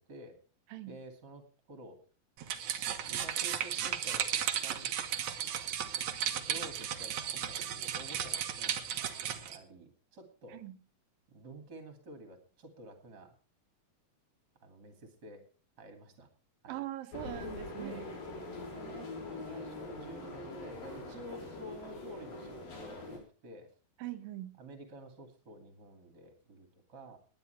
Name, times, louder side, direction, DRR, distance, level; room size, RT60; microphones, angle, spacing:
voice 1, 0.9-2.0 2.8-4.9 6.5-10.6 11.3-13.3 14.6-15.5 15.8-16.3 16.6-16.8 17.8-18.1 18.6-23.7 24.6-27.2, right 1 dB, 30° right, 6 dB, 2.7 m, -50 dB
sound 1, 2.4-9.6, right 9 dB, 60° right, 2.1 m, -35 dB
voice 2, 16.7-18.1 24.0-24.6, right 14 dB, 80° right, 10 dB, 2.8 m, -41 dB
sound 2, 17.1-23.2, left 2 dB, 70° left, 5.4 m, -43 dB
19.5 x 10.5 x 3.4 m, 0.38 s
omnidirectional pair, 4.1 m